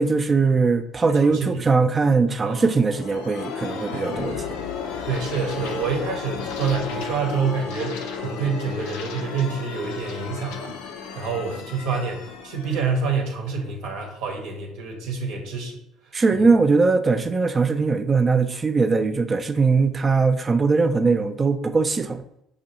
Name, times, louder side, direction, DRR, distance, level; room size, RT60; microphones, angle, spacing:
voice 1, 0.0-4.4 16.1-22.2, right 4 dB, 30° right, 0.4 m, -20 dB
voice 2, 1.1-1.6 2.4-2.6 3.9-4.3 5.1-10.7 11.1-15.8 16.3-16.5, right 5 dB, 65° right, 0.9 m, -27 dB
sound 1, 2.5-14.0, left 6 dB, 70° left, 0.4 m, -34 dB
5.1 x 2.4 x 2.9 m
hypercardioid pair, 60°, 0 cm